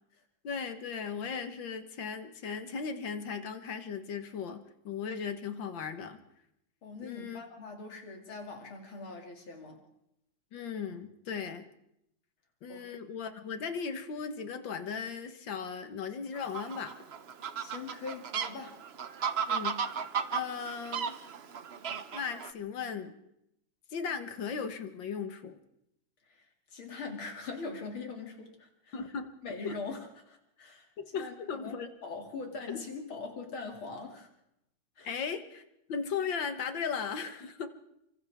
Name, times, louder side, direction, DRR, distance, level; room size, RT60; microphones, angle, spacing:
voice 1, 0.4-6.2 7.0-7.4 10.5-11.6 12.6-16.9 19.5-19.8 20.3-21.2 22.1-23.1 23.9-25.5 28.9-29.3 29.6-29.8 31.0-31.9 35.0-35.6 35.9-37.7, left 6 dB, 70° left, 8 dB, 2.1 m, -37 dB
voice 2, 6.8-9.8 12.7-12.8 17.6-18.8 26.3-26.5 26.7-29.0 29.4-30.9 31.2-34.3 35.0-35.1, left 4 dB, 90° left, 1 dB, 3.6 m, -42 dB
Fowl, 16.3-22.5, right 7 dB, 55° right, 0.7 m, -35 dB
29.5 x 24.5 x 3.6 m, 0.80 s
omnidirectional pair, 2.2 m